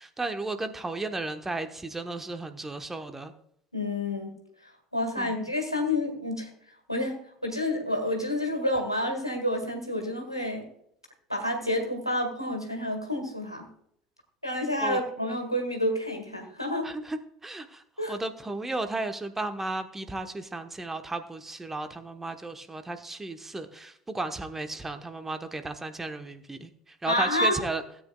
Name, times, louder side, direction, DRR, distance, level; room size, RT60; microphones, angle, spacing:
voice 1, 0.0-3.3 5.2-5.4 14.8-15.0 16.8-17.8 18.1-27.8, right 2 dB, 10° right, 8 dB, 1.1 m, -34 dB
voice 2, 3.7-4.3 4.9-6.5 6.9-10.6 11.3-13.7 14.4-16.9 18.0-18.1 27.0-27.6, left 1 dB, 90° left, 3 dB, 1.8 m, -29 dB
17.0 x 8.9 x 2.3 m, 0.70 s
figure-of-eight pair, 65°, 3 cm